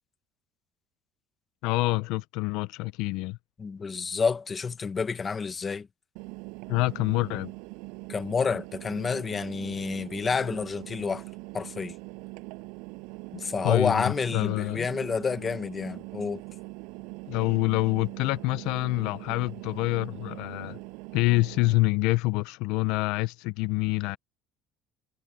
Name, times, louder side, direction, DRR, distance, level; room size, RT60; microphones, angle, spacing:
voice 1, 1.6-3.4 6.7-7.5 13.6-14.9 17.3-20.8 21.1-24.2, left 21 dB, 70° left, 0.5 m, -26 dB
voice 2, 3.6-5.9 8.1-11.2 11.5-11.9 13.3-16.4, left 5 dB, 20° left, 0.9 m, -29 dB
Engine, 6.2-21.8, right 28 dB, 80° right, 7.1 m, -42 dB
cardioid pair, 170°, 0 cm